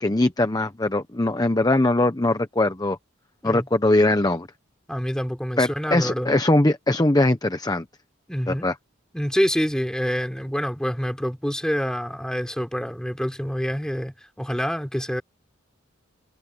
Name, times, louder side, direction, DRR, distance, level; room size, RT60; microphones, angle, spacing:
voice 1, 0.0-3.0 3.4-4.5 5.6-7.9 8.5-8.7, left 2 dB, 20° left, 0.9 m, -21 dB
voice 2, 4.9-6.3 8.3-8.7 9.1-15.2, equal, 5° left, 4.3 m, -26 dB
head